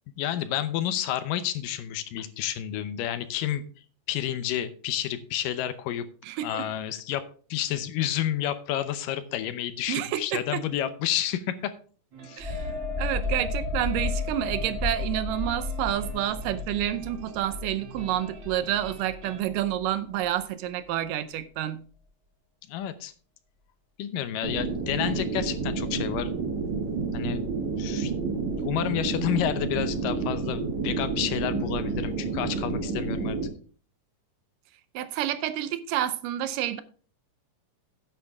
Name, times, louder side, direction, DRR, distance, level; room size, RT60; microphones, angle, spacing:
voice 1, 0.2-3.6 4.1-6.1 6.4-11.7 12.2-12.5 22.7-23.1 24.0-26.3 27.1-27.4 27.8-28.1 28.6-33.4, left 11 dB, 85° left, 2.5 m, -30 dB
voice 2, 6.3-6.6 9.9-10.6 12.4-12.6 13.0-21.8 34.9-36.8, right 12 dB, 80° right, 2.4 m, -29 dB
sound 1, 12.1-19.4, right 5 dB, 40° right, 2.0 m, -47 dB
sound 2, 12.4-19.8 20.2-20.4, left 3 dB, 15° right, 1.1 m, -33 dB
sound 3, 24.4-33.5, right 4 dB, 60° right, 3.3 m, -30 dB
10.0 x 8.7 x 3.5 m
omnidirectional pair, 3.8 m